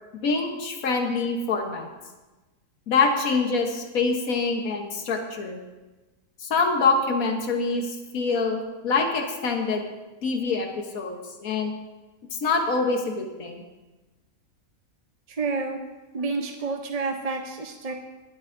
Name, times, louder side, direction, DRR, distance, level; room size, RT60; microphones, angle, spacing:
voice 1, 0.1-1.9 2.9-5.6 6.4-9.8 10.2-11.7 12.3-13.6, left 4 dB, 90° left, 3 dB, 1.5 m, -25 dB
voice 2, 15.3-15.8 16.1-17.9, right 4 dB, 40° right, 4 dB, 0.5 m, -29 dB
23.5 x 8.7 x 2.6 m, 1.2 s
omnidirectional pair, 1.4 m